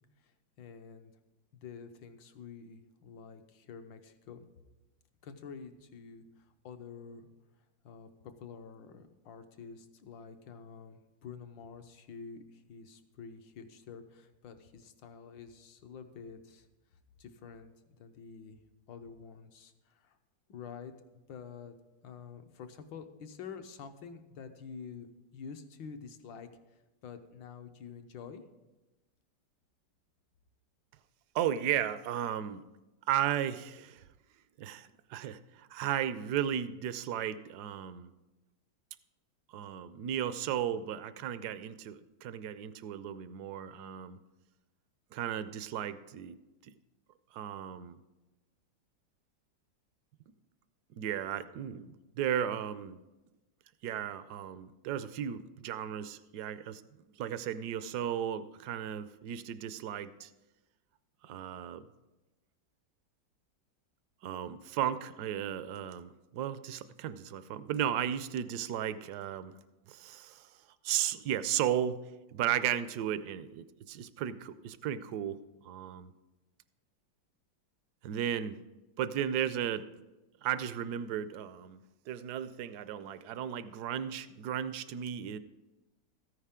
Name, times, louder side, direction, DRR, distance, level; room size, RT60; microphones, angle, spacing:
voice 1, 0.2-1.1 1.5-4.5 5.2-7.3 7.8-16.7 16.9-18.6 18.9-20.2 20.5-20.9 21.3-21.8 22.0-28.4, left 6 dB, 75° left, 7 dB, 1.6 m, -48 dB
voice 2, 31.3-32.7 33.1-34.0 34.6-38.1 39.5-44.2 45.1-46.4 47.3-48.0 51.0-53.0 53.8-56.8 57.2-60.3 61.2-61.9 64.2-69.6 69.9-72.0 72.3-76.1 78.0-78.6 79.0-79.9 80.4-85.4, right 10 dB, 75° right, 14 dB, 0.9 m, -35 dB
14.0 x 9.9 x 3.7 m, 1.1 s
omnidirectional pair, 2.1 m